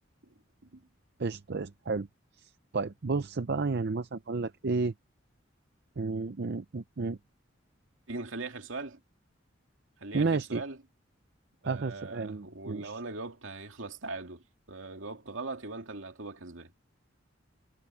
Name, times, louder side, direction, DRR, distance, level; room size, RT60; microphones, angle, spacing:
voice 1, 1.2-2.1 2.4-4.9 6.0-7.2 10.1-10.6 11.6-13.0, right 4 dB, 55° right, 0.6 m, -32 dB
voice 2, 8.1-9.0 10.0-10.8 11.6-16.7, right 3 dB, 80° right, 2.4 m, -40 dB
head